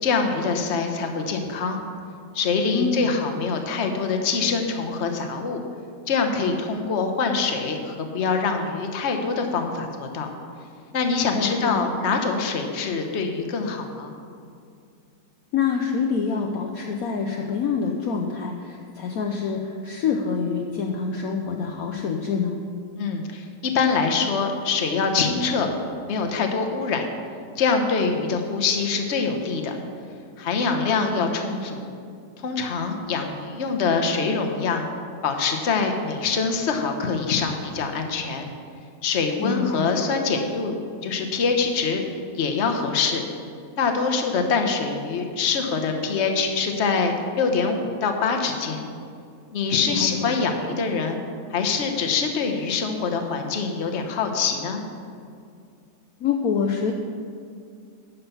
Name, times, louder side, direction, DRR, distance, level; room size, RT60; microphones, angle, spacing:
voice 1, 0.0-1.8 2.3-5.6 6.1-10.3 10.9-14.1 23.0-25.7 26.0-27.1 27.6-29.8 30.4-31.9 32.4-34.9 35.2-38.5 39.0-40.8 41.0-42.0 42.3-43.2 43.8-48.9 49.5-51.2 51.5-54.8, left 4 dB, 45° left, 4 dB, 1.1 m, -24 dB
voice 2, 2.7-3.1 11.3-11.9 15.5-22.6 30.9-31.2 39.4-39.8 49.9-50.5 56.2-56.9, left 6 dB, 65° left, 1 dB, 1.1 m, -26 dB
11.5 x 5.6 x 6.9 m, 2.3 s
omnidirectional pair, 1.9 m